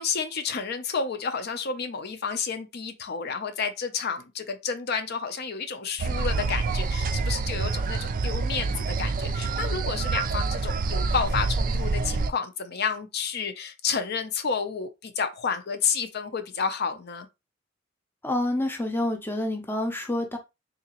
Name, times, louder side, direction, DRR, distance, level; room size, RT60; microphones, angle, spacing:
voice 1, 0.0-17.3, left 6 dB, 55° left, 0.6 m, -30 dB
sound 1, 6.0-12.3, right 4 dB, 45° right, 0.4 m, -27 dB
voice 2, 18.2-20.4, left 1 dB, 10° left, 0.5 m, -28 dB
3.7 x 2.8 x 2.9 m
head